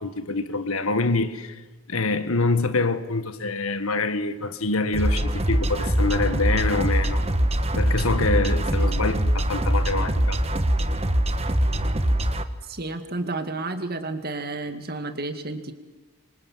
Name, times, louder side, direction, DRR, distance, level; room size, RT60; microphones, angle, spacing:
voice 1, 0.0-1.6 1.9-7.2 7.7-10.4, left 3 dB, 70° left, 1.6 m, -25 dB
sound 1, 4.9-12.4, right 1 dB, 30° right, 1.3 m, -23 dB
voice 2, 12.7-15.7, right 2 dB, 45° right, 2.2 m, -31 dB
27.0 x 24.0 x 7.5 m
head